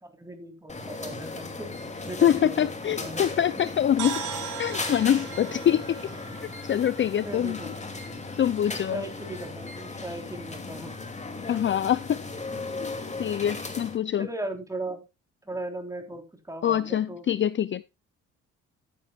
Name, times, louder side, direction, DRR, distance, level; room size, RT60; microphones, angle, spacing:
voice 1, 0.0-1.7 2.0-3.3 7.2-7.8 8.7-11.0 14.2-15.0 15.5-17.3, right 2 dB, 10° right, 3.7 m, -37 dB
sound 1, 0.7-14.0, left 3 dB, 25° left, 2.6 m, -37 dB
voice 2, 2.2-4.3 4.6-6.0 6.6-7.7 8.4-9.0 11.5-12.2 12.8-12.9 13.2-14.3 16.6-17.8, left 10 dB, 40° left, 0.5 m, -25 dB
sound 2, 4.0-7.9, right 8 dB, 80° right, 2.5 m, -38 dB
13.0 x 10.0 x 2.4 m
cardioid pair, 90°, 30 cm